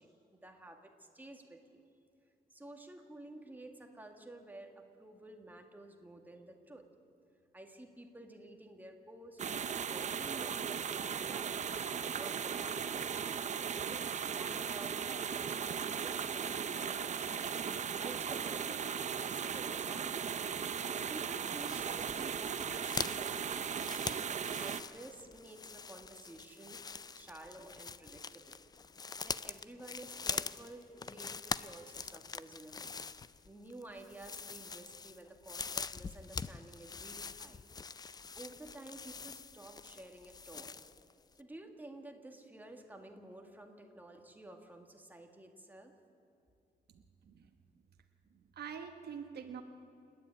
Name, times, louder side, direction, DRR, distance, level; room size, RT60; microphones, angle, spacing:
voice 1, 0.0-1.8 2.5-6.8 7.5-13.3 13.9-20.4 21.1-23.7 24.6-26.8 27.1-28.6 29.2-32.9 33.4-37.6 38.4-40.8 41.4-45.9, right 1 dB, 10° right, 3 dB, 1.8 m, -52 dB
sound 1, 9.4-24.8, right 7 dB, 45° right, 0.6 m, -37 dB
sound 2, 21.7-41.1 41.4-41.5, left 5 dB, 25° left, 0.4 m, -44 dB
voice 2, 46.9-47.5 48.3-49.6, right 7 dB, 85° right, 5 dB, 1.1 m, -46 dB
29.0 x 10.0 x 8.8 m, 2.6 s
wide cardioid pair, 155°, 16 cm